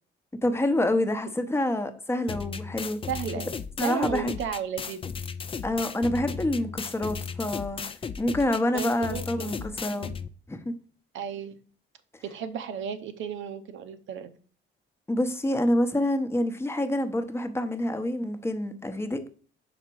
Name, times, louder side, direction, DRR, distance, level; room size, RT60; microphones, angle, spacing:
voice 1, 0.4-3.0 3.8-4.3 5.6-7.8 8.2-10.1 10.5-10.7 15.1-19.3, left 1 dB, 10° left, 0.8 m, -27 dB
sound 1, 2.3-10.3, left 6 dB, 25° left, 0.4 m, -36 dB
voice 2, 3.1-3.6 3.8-5.0 8.7-9.7 11.1-11.6 12.2-14.3, right 8 dB, 75° right, 0.7 m, -34 dB
5.8 x 4.0 x 4.6 m
cardioid pair, 90°, 20 cm